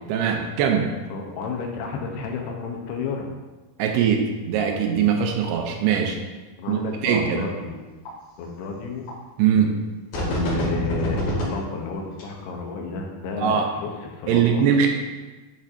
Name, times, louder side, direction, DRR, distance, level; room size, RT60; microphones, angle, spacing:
voice 1, 0.1-0.9 3.8-6.2 6.7-7.5 9.4-9.8 13.4-13.7 14.3-14.9, right 7 dB, 90° right, 2 dB, 2.7 m, -21 dB
voice 2, 1.1-3.2 6.6-7.8 8.4-9.1 10.2-14.6, left 4 dB, 85° left, 1 dB, 2.8 m, -31 dB
sound 1, 7.1-7.2 8.1-8.2 9.1-9.2 10.1-11.5 12.1-12.2, equal, 65° left, 3.7 m, -25 dB
10.5 x 4.3 x 2.6 m, 1.2 s
omnidirectional pair, 4.6 m